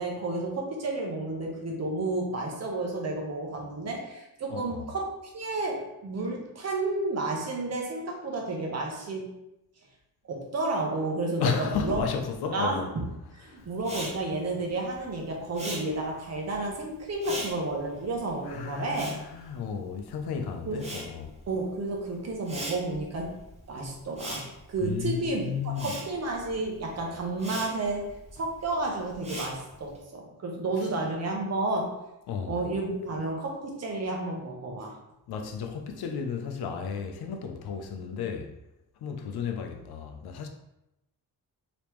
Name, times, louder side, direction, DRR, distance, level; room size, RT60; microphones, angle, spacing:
voice 1, 0.0-9.3 10.3-12.0 12.5-13.0 13.3-19.1 20.7-20.9 21.5-23.3 23.7-31.9 32.5-34.9, right 2 dB, 45° right, 0.8 m, -31 dB
voice 2, 4.5-4.9 11.4-12.9 13.5-13.7 18.4-21.3 24.8-26.0 32.3-32.6 35.3-38.5 39.0-40.5, left 6 dB, 85° left, 0.6 m, -33 dB
Respiratory sounds, 13.8-20.2 20.5-30.0, right 1 dB, 20° right, 0.8 m, -41 dB
3.4 x 3.0 x 3.0 m
wide cardioid pair, 150°, 37 cm